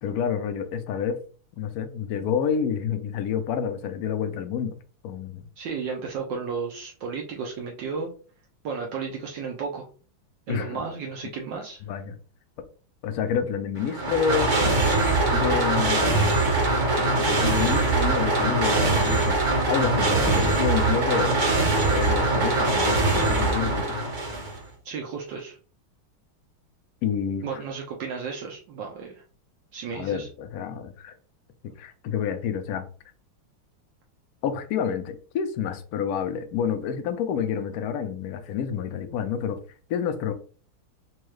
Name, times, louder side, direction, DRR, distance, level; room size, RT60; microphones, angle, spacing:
voice 1, 0.0-1.2 1.6-4.8 5.0-5.4 10.5-10.8 11.8-12.2 13.0-14.5 15.3-16.2 17.0-19.4 19.7-21.4 21.8-24.0 27.0-27.6 29.9-31.1 31.6-32.8 34.4-39.6 39.9-40.3, left 8 dB, 85° left, 0.8 m, -28 dB
voice 2, 5.6-8.1 8.6-9.9 10.5-11.8 24.8-25.6 27.4-29.2 29.7-30.3, right 5 dB, 70° right, 1.2 m, -33 dB
sound 1, 13.8-24.6, right 2 dB, 50° right, 0.5 m, -22 dB
4.4 x 2.3 x 3.1 m
omnidirectional pair, 2.3 m